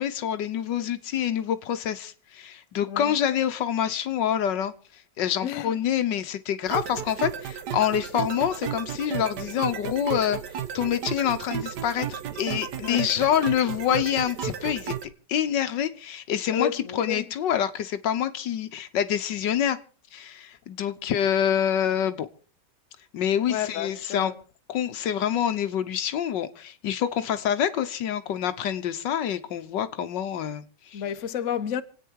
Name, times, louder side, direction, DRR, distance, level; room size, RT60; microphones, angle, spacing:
voice 1, 0.0-10.4 10.7-14.9 15.3-19.8 20.1-22.3 23.1-24.3 24.7-31.0, left 9 dB, 80° left, 1.6 m, -26 dB
voice 2, 5.4-5.8 12.8-13.2 16.5-17.2 23.5-24.3 30.9-31.8, left 9 dB, 50° left, 1.2 m, -31 dB
sound 1, 6.7-15.0, right 9 dB, 70° right, 1.6 m, -33 dB
26.5 x 9.1 x 4.6 m
omnidirectional pair, 1.9 m